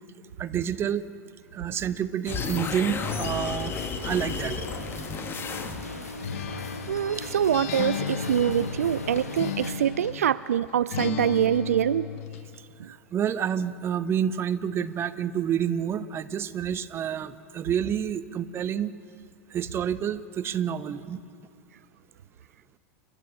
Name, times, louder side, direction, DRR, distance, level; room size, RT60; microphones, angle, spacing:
voice 1, 0.4-1.1 1.5-3.7 4.0-4.6 12.9-18.9 19.5-21.2, right 9 dB, 30° right, 13 dB, 1.0 m, -29 dB
sound 1, 2.2-9.7, left 2 dB, 90° left, 2.2 m, -39 dB
sound 2, 2.2-6.1, left 5 dB, 30° left, 1.8 m, -33 dB
Acoustic guitar, 6.2-10.3 10.9-12.5, left 8 dB, 65° left, 1.2 m, -34 dB
voice 2, 6.9-12.1 12.8-12.9, right 10 dB, 75° right, 16 dB, 0.4 m, -25 dB
29.0 x 12.0 x 7.5 m, 2.6 s
figure-of-eight pair, 90°, 8 cm